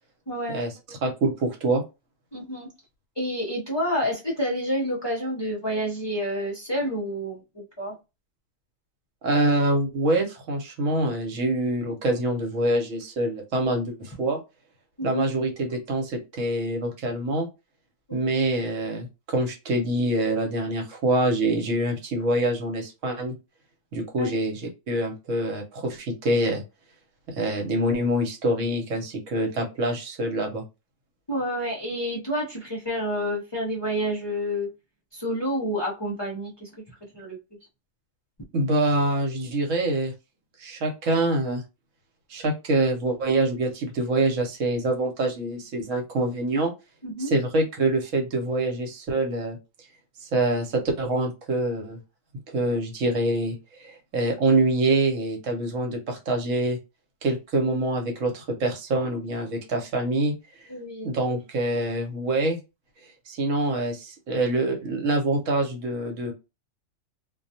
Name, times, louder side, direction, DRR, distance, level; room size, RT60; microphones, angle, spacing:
voice 1, 0.3-0.6 2.3-2.7 3.2-7.9 15.0-15.2 18.1-18.3 24.2-24.3 31.3-34.7 35.1-36.7 37.1-37.4 47.0-47.3 60.7-61.1, equal, 30° left, -3 dB, 0.5 m, -29 dB
voice 2, 1.0-1.8 9.2-14.4 15.0-17.5 18.1-23.3 23.9-24.6 24.9-26.6 27.3-30.6 38.5-40.1 40.6-41.6 42.3-46.7 47.2-49.6 50.2-52.0 52.5-56.8 57.2-60.3 61.0-62.6 63.3-66.3, right 2 dB, 70° right, 3 dB, 1.1 m, -25 dB
2.3 x 2.2 x 2.6 m, 0.26 s
omnidirectional pair, 1.4 m